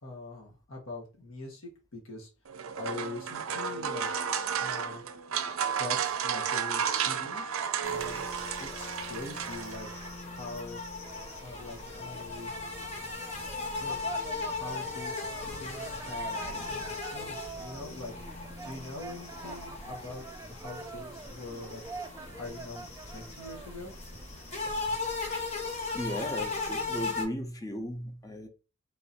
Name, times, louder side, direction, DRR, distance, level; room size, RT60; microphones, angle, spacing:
voice 1, 0.0-2.3 2.8-4.3 4.6-5.0 5.8-10.8 11.4-12.5 13.8-14.0 14.4-16.4 16.7-21.8 22.4-23.9, left 2 dB, 75° left, 1.3 m, -43 dB
sound 1, 2.4-10.1, right 7 dB, 80° right, 0.5 m, -32 dB
sound 2, 7.8-27.2, left 3 dB, 30° left, 1.1 m, -38 dB
sound 3, 11.0-25.0, right 4 dB, 15° right, 0.4 m, -46 dB
voice 2, 25.9-28.5, equal, 15° left, 0.7 m, -36 dB
3.8 x 2.6 x 4.2 m
head